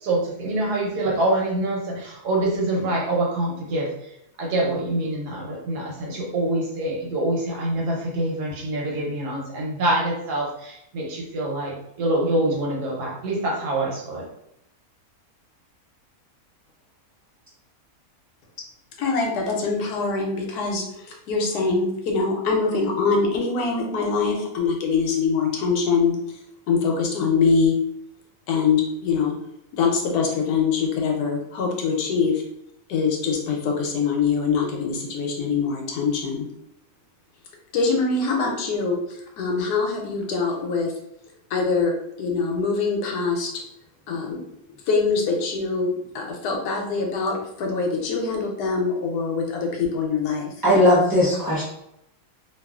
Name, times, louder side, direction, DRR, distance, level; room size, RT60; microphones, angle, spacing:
voice 1, 0.0-4.1 4.4-14.2, right 1 dB, 90° right, -2 dB, 1.4 m, -25 dB
voice 2, 19.0-26.2 26.7-27.7 28.5-29.3 29.8-32.4 32.9-36.5 37.7-39.0 39.4-40.9 41.5-41.9 42.2-43.5 44.1-44.4 44.9-50.5, left 5 dB, 85° left, 1 dB, 1.2 m, -23 dB
voice 3, 50.6-51.6, left 1 dB, 25° right, -6 dB, 0.4 m, -17 dB
3.1 x 2.3 x 2.3 m, 0.78 s
omnidirectional pair, 1.6 m